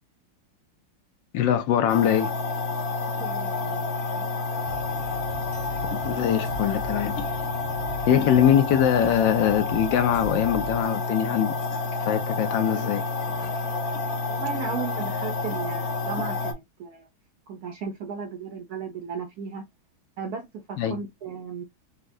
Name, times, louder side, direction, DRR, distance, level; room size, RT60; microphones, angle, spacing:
voice 1, 1.3-2.3 6.0-7.2 8.1-11.5 12.1-13.0 20.8-21.0, left 10 dB, 75° left, 1.2 m, -22 dB
sound 1, 1.9-16.5, left 3 dB, 55° left, 1.2 m, -29 dB
voice 2, 3.0-5.0 14.3-17.1 17.5-19.6 20.2-21.6, right 6 dB, 70° right, 0.9 m, -36 dB
sound 2, 4.6-10.8, right 2 dB, 85° right, 0.6 m, -40 dB
4.2 x 2.3 x 2.4 m
omnidirectional pair, 2.2 m